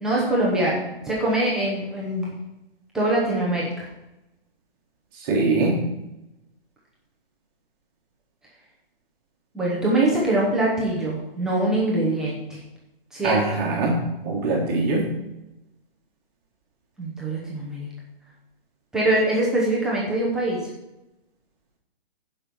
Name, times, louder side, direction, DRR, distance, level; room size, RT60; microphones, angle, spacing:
voice 1, 0.0-2.3 2.9-3.9 9.5-12.6 13.1-13.4 17.0-17.9 18.9-20.6, right 1 dB, ahead, -6 dB, 0.5 m, -23 dB
voice 2, 5.2-5.8 13.2-15.1, right 3 dB, 25° right, -2 dB, 1.4 m, -23 dB
10.0 x 5.3 x 6.2 m, 0.93 s
hypercardioid pair, 165°, 29 cm